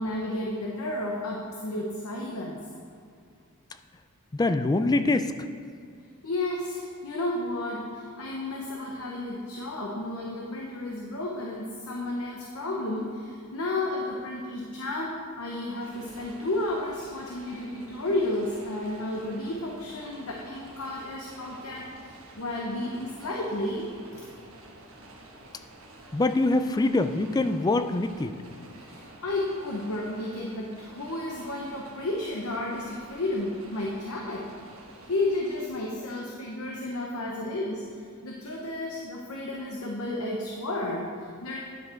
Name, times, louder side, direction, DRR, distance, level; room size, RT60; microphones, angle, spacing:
voice 1, 0.0-2.6 6.2-24.2 28.8-34.5 35.1-41.6, left 1 dB, 75° left, -1 dB, 0.9 m, -32 dB
voice 2, 4.3-5.3 26.1-28.4, left 2 dB, 15° left, 9 dB, 0.3 m, -24 dB
sound 1, 15.8-35.7, right 1 dB, 65° right, 1.2 m, -49 dB
10.5 x 6.1 x 4.5 m, 2.3 s
head